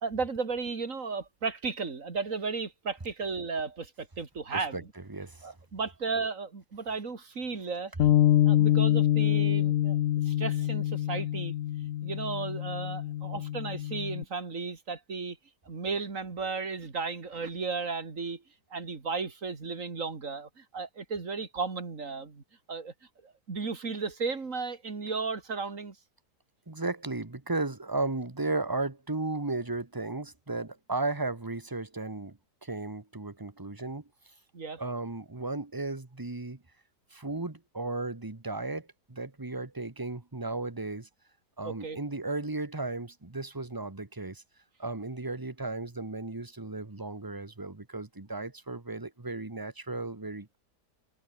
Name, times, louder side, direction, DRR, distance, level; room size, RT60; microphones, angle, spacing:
voice 1, 0.0-4.9 5.4-8.1 8.5-10.0 10.2-11.5 12.0-15.4 15.7-18.4 18.7-22.4 22.7-22.9 23.2-26.0 34.5-34.8 41.6-42.0, right 4 dB, 45° right, 3.0 m, -34 dB
voice 2, 4.5-4.8 5.1-5.5 26.7-34.0 34.8-36.6 37.1-41.1 41.6-44.4 44.8-50.6, right 2 dB, 15° right, 1.4 m, -35 dB
Bass guitar, 8.0-14.2, left 12 dB, 60° left, 0.9 m, -26 dB
omnidirectional pair, 1.8 m